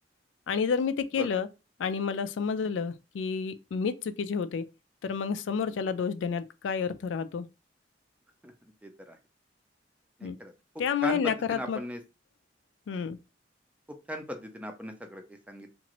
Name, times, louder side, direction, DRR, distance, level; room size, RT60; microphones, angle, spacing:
voice 1, 0.5-1.5 1.8-4.6 5.0-7.5 10.2-10.4 10.8-11.8 12.9-13.2, left 6 dB, 90° left, 0.3 m, -30 dB
voice 2, 8.8-9.2 10.2-10.5 11.0-11.2 11.5-12.0 14.1-15.7, equal, 10° right, 0.4 m, -38 dB
2.9 x 2.5 x 2.9 m
head